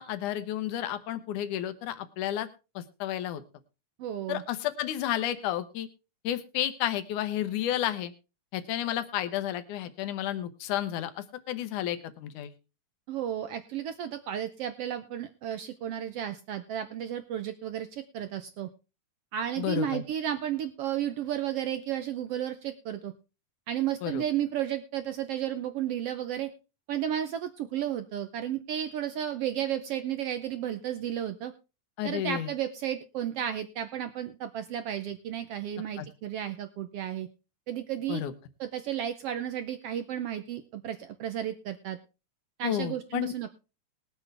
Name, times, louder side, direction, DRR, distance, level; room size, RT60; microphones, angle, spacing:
voice 1, 0.0-2.5 2.8-3.4 4.3-5.9 6.2-8.1 8.5-12.5 19.6-20.0 24.0-24.2 32.0-32.5 36.0-36.1 38.1-38.3 42.6-43.3, left 12 dB, 75° left, 10 dB, 2.5 m, -31 dB
voice 2, 4.0-4.4 13.1-18.7 19.3-23.1 23.7-26.5 26.9-31.5 32.0-37.3 37.7-38.2 38.6-42.0 42.6-43.5, right 10 dB, 75° right, 9 dB, 1.3 m, -33 dB
20.5 x 8.3 x 3.3 m, 0.31 s
omnidirectional pair, 3.6 m